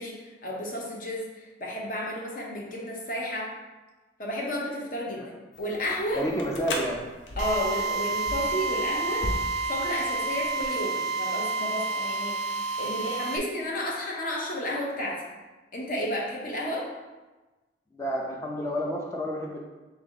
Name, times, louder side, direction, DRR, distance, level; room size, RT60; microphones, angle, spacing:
voice 1, 0.0-3.5 4.2-5.3 5.6-6.2 7.4-9.3 9.7-12.3 12.8-15.2 15.7-16.8, left 1 dB, 45° left, -2 dB, 0.8 m, -32 dB
sound 1, 5.5-10.8, left 1 dB, 85° left, 0.6 m, -38 dB
voice 2, 6.1-7.0 17.9-19.6, equal, 15° left, -1 dB, 0.3 m, -30 dB
Drill, 7.4-13.4, right 3 dB, 65° right, 0.3 m, -29 dB
3.5 x 2.8 x 3.7 m, 1.2 s
head